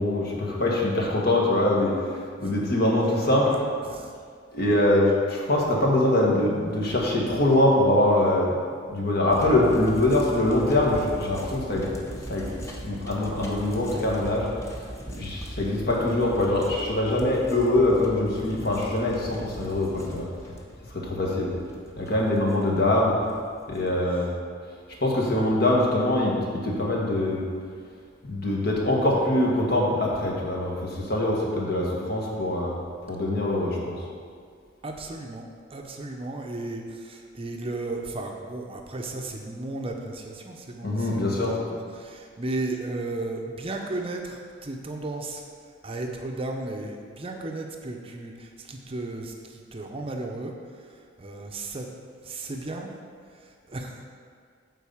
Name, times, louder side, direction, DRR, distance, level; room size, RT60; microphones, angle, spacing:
voice 1, 0.0-1.9 2.4-3.5 4.5-8.5 8.9-12.5 12.8-14.5 15.1-20.3 20.9-21.5 22.0-23.2 23.7-24.3 25.0-27.4 28.2-32.7 33.1-34.0 40.8-41.5, left 1 dB, 50° left, -3 dB, 1.6 m, -23 dB
sound 1, 9.3-23.9, equal, 15° left, 0.9 m, -40 dB
voice 2, 34.8-35.4 35.7-45.4 45.8-51.9 52.2-52.9 53.4-54.1, right 2 dB, 30° right, 2 dB, 0.7 m, -35 dB
9.6 x 4.0 x 7.1 m, 2.1 s
head